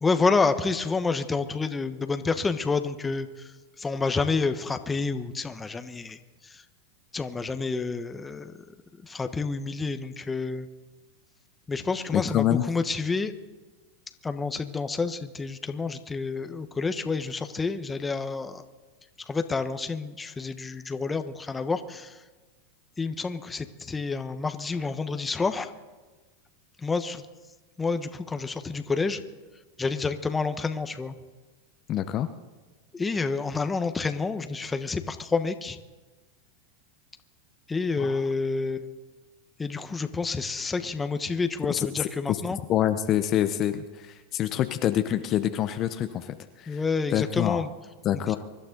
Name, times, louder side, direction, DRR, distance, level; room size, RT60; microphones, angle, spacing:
voice 1, 0.0-3.3 3.8-6.2 7.1-8.5 9.1-10.7 11.7-13.3 14.2-18.6 19.3-22.1 23.0-25.7 26.8-27.2 27.8-29.2 29.8-31.1 32.9-35.8 37.7-38.8 39.6-42.6 46.7-47.7, left 4 dB, 15° left, 9 dB, 1.1 m, -28 dB
voice 2, 12.1-12.7 31.9-32.3 38.0-38.3 41.8-41.9 42.3-42.4 42.7-46.8 47.1-47.6 48.0-48.4, left 11 dB, 40° left, 9 dB, 0.8 m, -26 dB
24.5 x 12.0 x 3.9 m, 1.3 s
hypercardioid pair, 105°, 0 cm